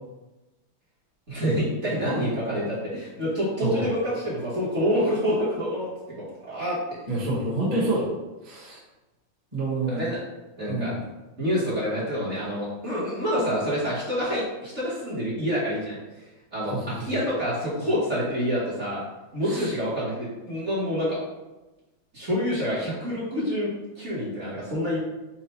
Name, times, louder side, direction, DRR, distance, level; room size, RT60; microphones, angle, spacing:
voice 1, 1.3-6.8 9.9-10.2 10.6-10.9 11.4-16.2 16.5-19.0 19.3-21.2 22.1-25.0, equal, 40° right, -9 dB, 1.5 m, -27 dB
voice 2, 7.1-8.1 8.4-8.8 9.5-10.0 10.7-11.0 16.7-16.8 19.5-19.7, right 2 dB, 20° right, -7 dB, 1.1 m, -27 dB
4.4 x 2.4 x 4.4 m, 1.1 s
omnidirectional pair, 2.1 m